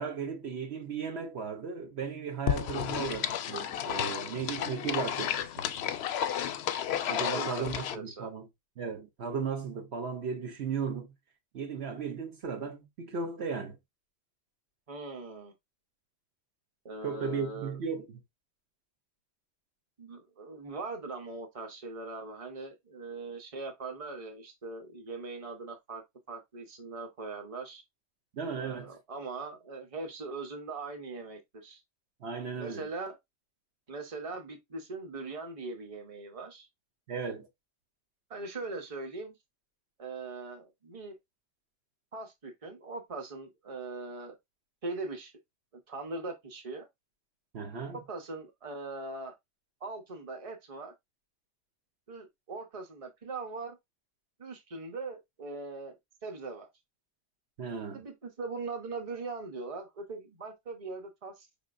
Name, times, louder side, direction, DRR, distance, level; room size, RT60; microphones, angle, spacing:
voice 1, 0.0-5.7 6.9-8.5 8.8-11.1 11.5-13.8 17.0-18.2 28.3-28.9 32.2-32.8 37.1-37.5 47.5-48.0 57.6-58.0, right 5 dB, 65° right, 1.1 m, -36 dB
sound 1, 2.5-8.0, left 9 dB, 65° left, 0.7 m, -32 dB
voice 2, 2.7-3.2 7.3-8.3 14.9-15.5 16.8-17.8 20.0-27.8 28.5-31.8 32.6-33.2 33.9-36.7 38.3-39.3 40.0-41.2 42.1-44.3 44.8-45.3 45.9-46.9 47.9-49.3 49.8-50.9 52.1-53.8 54.4-56.7 57.9-61.5, right 3 dB, 30° right, 1.0 m, -41 dB
5.3 x 3.5 x 2.5 m
omnidirectional pair, 1.3 m